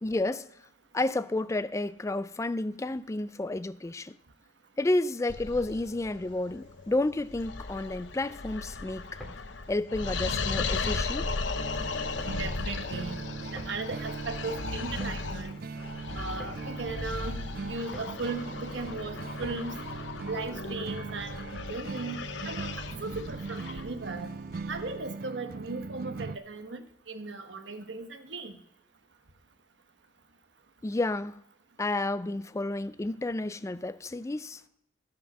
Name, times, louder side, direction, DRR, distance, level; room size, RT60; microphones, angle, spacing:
voice 1, 0.0-0.5 0.9-4.1 4.8-9.2 9.7-11.3 30.8-31.4 31.8-34.7, left 2 dB, 15° left, 0.3 m, -31 dB
sound 1, 5.3-25.0, left 4 dB, 80° left, 0.8 m, -37 dB
sound 2, 9.2-19.9, equal, ahead, 3.0 m, -49 dB
sound 3, 11.6-26.4, right 4 dB, 55° right, 0.4 m, -40 dB
voice 2, 12.3-13.2 13.5-15.5 16.1-17.4 17.7-19.7 20.3-21.4 21.7-24.3 24.7-28.6, right 3 dB, 75° right, 1.1 m, -37 dB
17.0 x 5.9 x 5.4 m
head